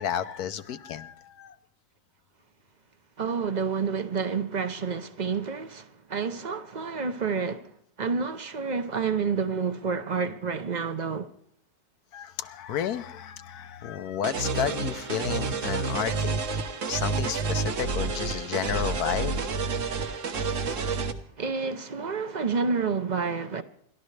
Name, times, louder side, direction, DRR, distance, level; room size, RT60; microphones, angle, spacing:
voice 1, 0.0-1.6 12.1-16.5 16.9-19.4, left 9 dB, 80° left, 1.3 m, -32 dB
voice 2, 3.2-5.8 6.1-7.7 8.0-11.3 21.4-23.6, right 5 dB, 40° right, 0.7 m, -29 dB
sound 1, 14.2-21.1, right 4 dB, 55° right, 1.4 m, -29 dB
28.5 x 12.5 x 3.3 m
omnidirectional pair, 1.6 m